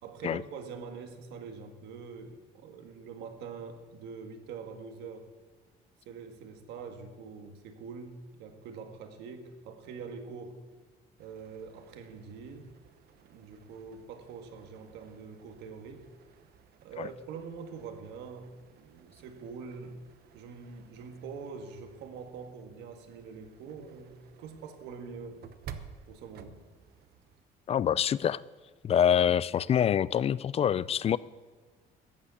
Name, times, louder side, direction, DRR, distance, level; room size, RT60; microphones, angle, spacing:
voice 1, 0.0-5.3 6.1-10.6 11.2-12.8 13.2-16.1 16.8-20.0 20.3-25.4 26.1-26.7 28.8-28.9, right 5 dB, 90° right, 1.7 m, -44 dB
sound 1, 11.2-27.4, right 8 dB, 70° right, 1.0 m, -54 dB
voice 2, 27.7-28.4 28.8-31.2, left 9 dB, 35° left, 0.3 m, -25 dB
14.0 x 8.1 x 8.5 m
cardioid pair, 110°, 17 cm